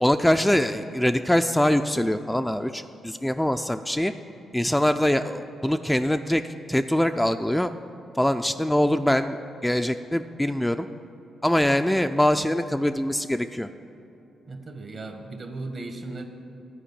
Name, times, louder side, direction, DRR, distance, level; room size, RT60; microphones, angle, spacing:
voice 1, 0.0-4.1 4.5-6.4 6.7-7.7 8.2-10.9 11.4-13.7, left 1 dB, 5° left, 7 dB, 0.4 m, -23 dB
voice 2, 14.5-16.2, right 2 dB, 50° right, 5 dB, 1.3 m, -36 dB
10.0 x 5.0 x 8.2 m, 2.8 s
hypercardioid pair, 45°, 0 cm